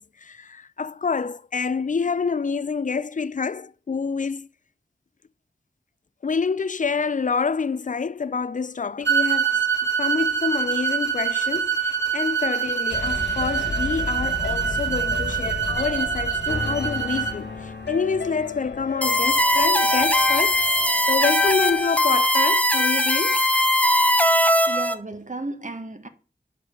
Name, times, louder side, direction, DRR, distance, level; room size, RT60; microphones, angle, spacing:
voice 1, 0.0-4.5 6.2-9.6 10.0-20.6 21.1-23.4, left 5 dB, 45° left, 0.4 m, -27 dB
sound 1, 9.0-17.4, right 7 dB, 80° right, 1.5 m, -25 dB
sound 2, 12.9-21.9, left 4 dB, 80° left, 1.2 m, -33 dB
sound 3, 19.0-24.9, left 1 dB, 10° left, 1.0 m, -20 dB
voice 2, 24.7-26.1, right 2 dB, 45° right, 1.4 m, -34 dB
8.4 x 5.1 x 6.9 m
wide cardioid pair, 55°, 18 cm